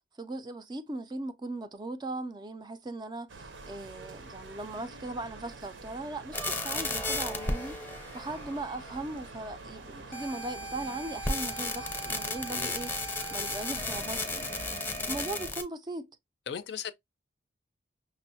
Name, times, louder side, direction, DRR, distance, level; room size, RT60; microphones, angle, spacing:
voice 1, 0.2-12.9 13.3-14.5 15.1-16.1, right 2 dB, 25° right, 0.4 m, -39 dB
sound 1, 3.3-14.8, right 3 dB, 85° right, 0.7 m, -47 dB
sound 2, 6.3-9.2 10.1-15.6, left 2 dB, 10° left, 0.7 m, -34 dB
voice 2, 16.5-16.9, left 7 dB, 65° left, 0.4 m, -37 dB
5.9 x 2.1 x 2.7 m
head